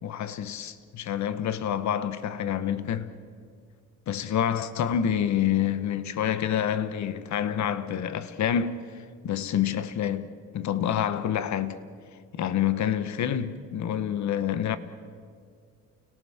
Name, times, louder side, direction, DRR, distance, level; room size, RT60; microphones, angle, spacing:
voice 1, 0.0-3.1 4.1-8.8 9.2-11.8 12.3-14.8, left 9 dB, 65° left, 1.3 m, -27 dB
30.0 x 18.0 x 7.3 m
cardioid pair, 90°, 30 cm